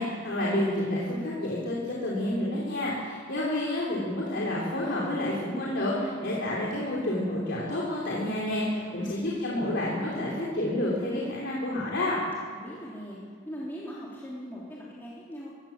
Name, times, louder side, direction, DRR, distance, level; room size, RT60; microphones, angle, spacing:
voice 1, 0.0-12.2, left 1 dB, 55° left, -5 dB, 3.8 m, -29 dB
voice 2, 5.9-6.6 8.7-9.2 12.5-13.2 13.5-15.5, equal, 10° left, -7 dB, 3.5 m, -41 dB
23.5 x 15.5 x 7.4 m, 2.1 s
head